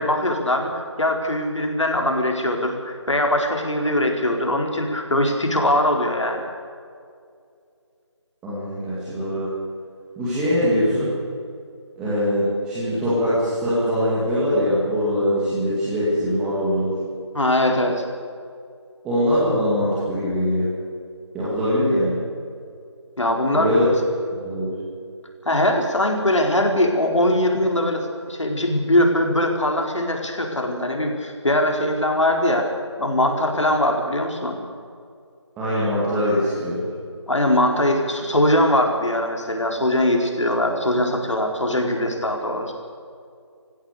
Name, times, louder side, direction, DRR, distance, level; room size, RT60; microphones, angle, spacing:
voice 1, 0.0-6.4 17.3-18.0 23.2-23.7 25.4-32.7 33.0-34.6 37.3-42.7, left 1 dB, 80° left, 2 dB, 4.5 m, -21 dB
voice 2, 8.4-9.5 10.2-11.1 12.0-17.0 19.0-20.7 21.3-22.2 23.5-23.9 24.3-24.7 35.6-36.8, equal, 5° right, -11 dB, 2.2 m, -22 dB
20.0 x 16.0 x 8.4 m, 2.3 s
figure-of-eight pair, 170°, 15 cm